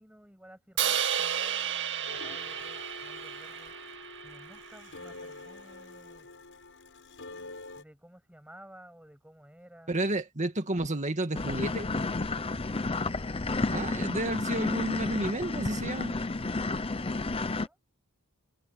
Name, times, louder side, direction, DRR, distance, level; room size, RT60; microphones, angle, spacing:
voice 1, 0.0-3.7 4.2-6.3 7.7-9.9 17.2-17.8, equal, 5° right, 7.2 m, -54 dB
Crash cymbal, 0.8-5.0, right 9 dB, 60° right, 2.2 m, -33 dB
sound 1, 2.1-7.8, left 3 dB, 60° left, 7.6 m, -46 dB
voice 2, 9.9-11.9 13.7-16.2, right 1 dB, 35° right, 2.1 m, -31 dB
sound 2, 11.3-17.7, left 3 dB, 25° left, 0.8 m, -31 dB
head